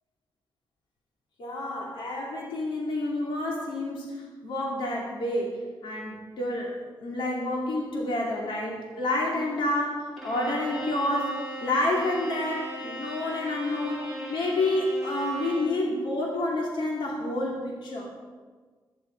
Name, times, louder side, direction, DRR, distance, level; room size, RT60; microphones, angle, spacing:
voice 1, 1.4-18.1, left 1 dB, 80° left, -2 dB, 2.6 m, -29 dB
Bowed string instrument, 10.2-15.8, right 1 dB, ahead, 2.8 m, -38 dB
14.5 x 11.5 x 4.6 m, 1.4 s
wide cardioid pair, 180°, 8 cm